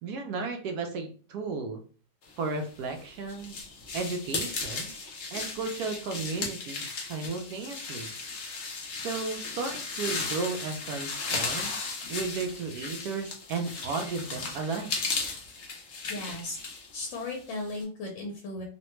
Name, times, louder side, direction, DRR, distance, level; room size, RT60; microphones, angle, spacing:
voice 1, 0.0-1.8 2.4-3.6 3.9-4.9 5.3-8.1 9.0-11.8 12.1-14.9, right 4 dB, 75° right, 5 dB, 0.9 m, -34 dB
sound 1, 2.7-17.8, left 4 dB, 65° left, 0.7 m, -36 dB
voice 2, 16.1-16.6 16.9-18.6, left 2 dB, 85° left, 1 dB, 1.4 m, -36 dB
3.2 x 2.1 x 2.9 m, 0.39 s
omnidirectional pair, 2.0 m